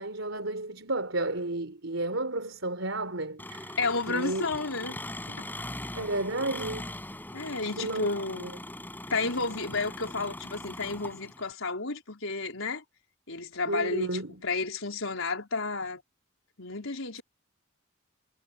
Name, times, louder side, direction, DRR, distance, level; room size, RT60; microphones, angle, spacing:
voice 1, 0.0-3.8 4.1-4.4 5.9-6.9 7.8-8.1 8.4-8.5 13.7-14.4, right 2 dB, 70° right, 4.3 m, -32 dB
Engine, 3.4-11.5, left 1 dB, 10° left, 5.3 m, -41 dB
voice 2, 3.8-5.0 5.3-5.4 7.3-8.5 9.1-12.8 13.3-14.1 14.4-16.0 16.6-17.2, left 3 dB, 70° left, 4.8 m, -31 dB
head